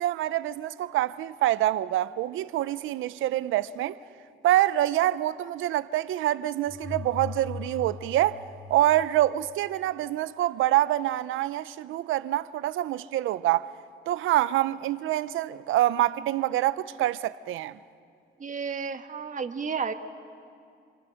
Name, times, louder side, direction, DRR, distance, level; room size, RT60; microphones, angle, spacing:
voice 1, 0.0-4.0 4.4-8.4 8.7-13.7 14.1-17.8, right 14 dB, 85° right, 0.7 m, -26 dB
sound 1, 6.7-9.6, left 4 dB, 20° left, 1.2 m, -40 dB
voice 2, 18.4-19.9, right 5 dB, 40° right, 1.6 m, -32 dB
28.0 x 26.5 x 6.5 m
cardioid pair, 90°, 20 cm